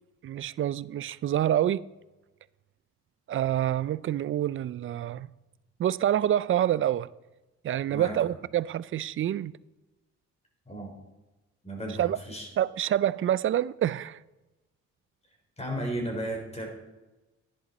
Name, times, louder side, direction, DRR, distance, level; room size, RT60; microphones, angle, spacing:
voice 1, 0.2-1.8 3.3-5.3 5.8-7.1 7.6-9.5 12.0-12.2 12.6-14.2, right 11 dB, 45° right, 0.4 m, -27 dB
voice 2, 11.6-12.5 15.6-16.7, right 1 dB, 20° left, 4.0 m, -34 dB
11.0 x 10.5 x 4.1 m
cardioid pair, 90°, 30 cm